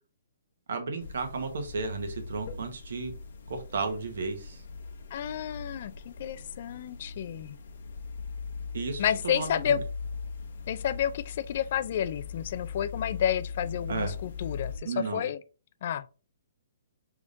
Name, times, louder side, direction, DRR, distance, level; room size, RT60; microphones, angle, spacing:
voice 1, 0.7-3.1 3.5-4.6 8.7-9.8 13.9-14.1 14.8-15.3, right 4 dB, 65° right, 1.1 m, -33 dB
sound 1, 1.0-14.8, left 5 dB, 60° left, 0.9 m, -40 dB
voice 2, 5.1-7.6 9.0-9.8 10.7-15.4 15.8-16.1, left 9 dB, 40° left, 0.3 m, -30 dB
5.1 x 3.5 x 2.6 m
hypercardioid pair, 170°, 0 cm